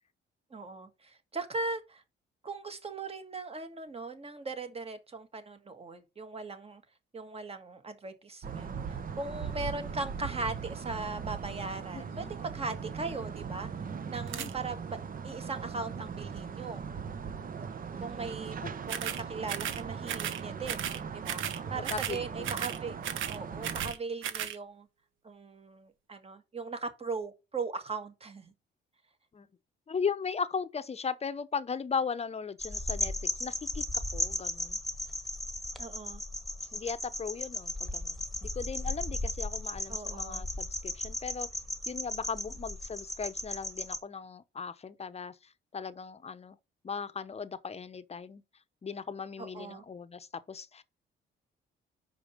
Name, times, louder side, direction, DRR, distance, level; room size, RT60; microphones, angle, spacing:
voice 1, 0.5-2.0 2.4-6.8 7.1-8.8 9.2-13.7 14.1-16.9 17.6-18.6 18.9-21.4 21.7-23.0 23.3-24.9 25.2-28.5 35.8-36.2 39.9-40.4 49.4-49.8, right 3 dB, 30° right, 1.6 m, -39 dB
sound 1, 8.4-23.9, right 6 dB, 45° right, 0.9 m, -39 dB
voice 2, 11.9-12.3 14.3-14.5 18.6-18.7 21.8-22.5 29.3-29.5 29.9-33.1 33.4-34.8 36.7-41.5 41.9-46.6 46.8-48.4 48.8-50.8, left 6 dB, 30° left, 0.8 m, -37 dB
sound 2, 14.3-14.5 18.9-19.2 19.5-19.8 20.1-20.4 20.7-21.0 21.2-21.6 21.8-22.2 22.4-22.8 23.0-24.0 24.2-24.6, right 10 dB, 85° right, 1.0 m, -35 dB
sound 3, 32.6-44.0, left 1 dB, ahead, 1.4 m, -36 dB
5.7 x 5.1 x 6.5 m
cardioid pair, 90°, 20 cm